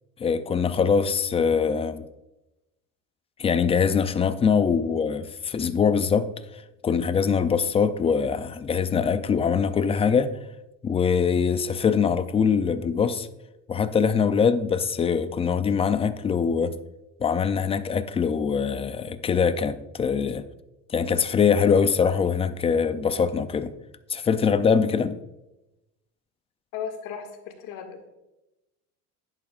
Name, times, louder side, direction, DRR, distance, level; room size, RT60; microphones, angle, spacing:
voice 1, 0.2-2.0 3.4-6.3 6.8-10.4 10.8-13.3 13.7-16.7 17.2-20.5 20.9-23.7 24.1-25.2, left 6 dB, 15° left, 0.3 m, -23 dB
voice 2, 26.7-28.1, left 7 dB, 60° left, 1.9 m, -36 dB
11.0 x 10.5 x 2.4 m
cardioid pair, 130°, 37 cm